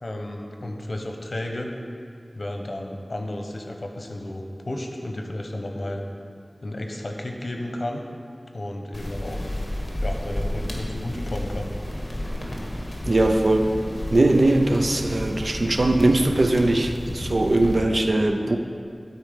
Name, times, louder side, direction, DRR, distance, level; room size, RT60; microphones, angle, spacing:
voice 1, 0.0-1.7 2.3-6.0 6.6-8.0 8.5-9.4 10.0-11.7, left 1 dB, 70° left, 2 dB, 1.0 m, -32 dB
sound 1, 8.9-17.8, left 1 dB, 40° left, 1.7 m, -32 dB
voice 2, 13.0-13.7 14.1-18.6, right 2 dB, 65° right, 5 dB, 0.6 m, -20 dB
12.5 x 4.5 x 5.2 m, 2.4 s
wide cardioid pair, 40°, 0 cm